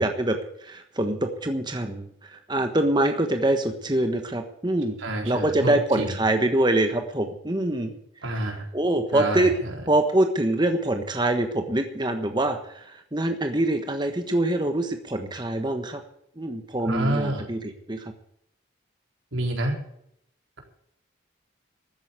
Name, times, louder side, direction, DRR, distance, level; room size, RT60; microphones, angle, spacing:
voice 1, 0.0-5.0 5.2-8.0 8.7-9.5 9.9-16.0 16.4-18.1, right 1 dB, 20° right, 6 dB, 1.3 m, -24 dB
voice 2, 5.0-6.2 8.2-8.7 9.1-9.7 16.8-17.5 19.3-19.8, right 1 dB, 85° right, 2 dB, 4.2 m, -28 dB
13.5 x 9.8 x 8.3 m, 0.74 s
head